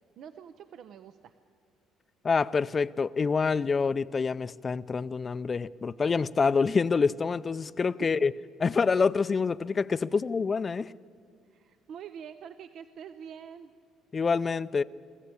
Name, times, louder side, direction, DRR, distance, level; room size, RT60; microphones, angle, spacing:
voice 1, 0.2-1.3 11.5-13.7, right 8 dB, 60° right, 10 dB, 0.6 m, -45 dB
voice 2, 2.2-8.3 8.6-10.9 14.1-14.8, left 5 dB, 35° left, 16 dB, 0.5 m, -26 dB
23.0 x 14.0 x 8.5 m, 2.2 s
supercardioid pair, 80°, 0 cm